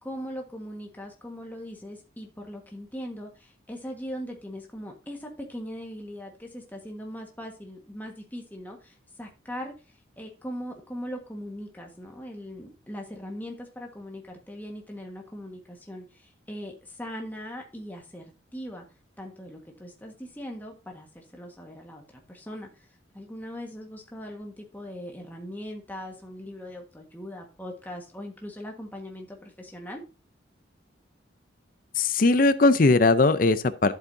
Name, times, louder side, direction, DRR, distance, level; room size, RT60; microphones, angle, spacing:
voice 1, 0.0-18.8 19.2-22.9 23.1-30.0, equal, 10° left, 1.5 m, -40 dB
voice 2, 32.0-33.9, left 3 dB, 45° left, 0.5 m, -19 dB
11.5 x 8.2 x 2.7 m
head